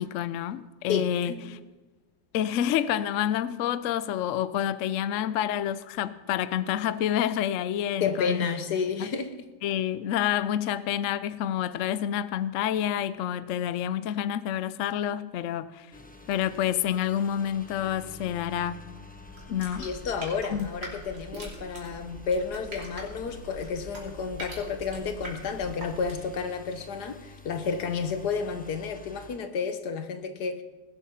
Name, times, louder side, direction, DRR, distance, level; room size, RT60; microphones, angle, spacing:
voice 1, 0.0-1.6 2.3-8.4 9.0-9.1 9.6-15.9 16.3-18.8 19.5-19.9 20.5-20.7, left 10 dB, 65° left, 0.9 m, -28 dB
voice 2, 0.9-1.4 8.0-9.5 16.2-16.3 19.8-30.6, left 5 dB, 85° left, 1.7 m, -31 dB
sound 1, 15.9-29.4, left 2 dB, 5° left, 0.7 m, -49 dB
sound 2, 19.1-26.4, right 1 dB, 90° right, 3.5 m, -43 dB
19.5 x 8.2 x 5.7 m
omnidirectional pair, 1.7 m